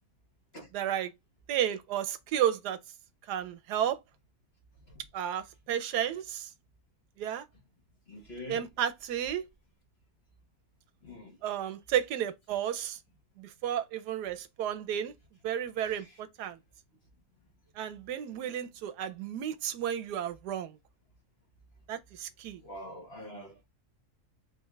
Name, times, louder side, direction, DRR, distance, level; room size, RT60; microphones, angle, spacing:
voice 1, 0.7-1.1 1.5-2.8 3.3-4.0 5.1-6.5 7.2-7.4 8.5-9.5 11.4-13.0 13.4-15.1 15.4-16.6 17.8-20.7 21.9-22.6, right 10 dB, 85° right, 1.2 m, -32 dB
voice 2, 8.1-8.6 11.0-11.4 15.8-16.0 22.6-23.6, left 1 dB, 40° left, 1.3 m, -44 dB
3.7 x 3.4 x 3.1 m
omnidirectional pair, 1.7 m